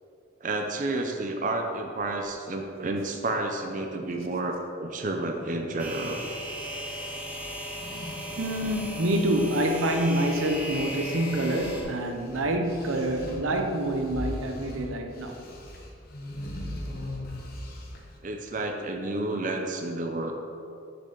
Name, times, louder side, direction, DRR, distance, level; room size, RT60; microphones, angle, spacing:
voice 1, 0.4-6.2 8.3-8.5 18.2-20.3, right 2 dB, 40° right, 3 dB, 0.5 m, -30 dB
sound 1, 5.8-11.8, right 1 dB, 10° right, 0.8 m, -36 dB
sound 2, 7.7-10.0 10.3-18.2, left 1 dB, 50° left, 1.0 m, -40 dB
voice 2, 8.4-15.3, right 1 dB, 85° right, 5 dB, 0.7 m, -27 dB
6.8 x 6.7 x 3.8 m, 2.6 s
head